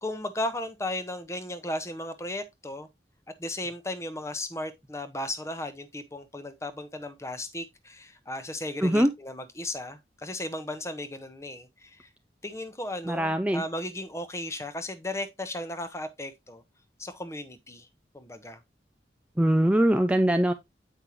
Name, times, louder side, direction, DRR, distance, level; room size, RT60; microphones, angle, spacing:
voice 1, 0.0-2.9 3.4-12.1 12.4-16.6 17.0-17.9 18.1-18.6, left 1 dB, 15° left, 0.7 m, -35 dB
voice 2, 8.8-9.1 13.1-13.6 19.4-20.5, right 1 dB, 5° right, 0.3 m, -22 dB
8.4 x 5.3 x 3.1 m
head